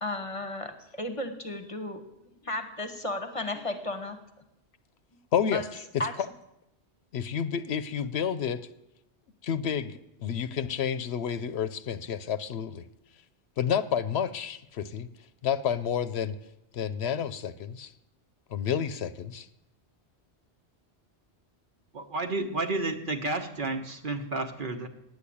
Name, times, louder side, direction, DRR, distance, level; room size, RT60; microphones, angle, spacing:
voice 1, 0.0-2.0 2.4-4.2 5.5-5.6 6.0-6.1, left 1 dB, 30° left, 7 dB, 1.0 m, -34 dB
voice 2, 5.3-5.8 7.1-8.6 9.4-12.8 13.6-15.1 15.4-16.3 16.7-17.9 18.5-19.5, left 8 dB, 70° left, 13 dB, 0.9 m, -30 dB
voice 3, 21.9-24.9, right 2 dB, 50° right, 6 dB, 1.1 m, -31 dB
9.7 x 8.4 x 8.5 m, 0.86 s
omnidirectional pair, 1.1 m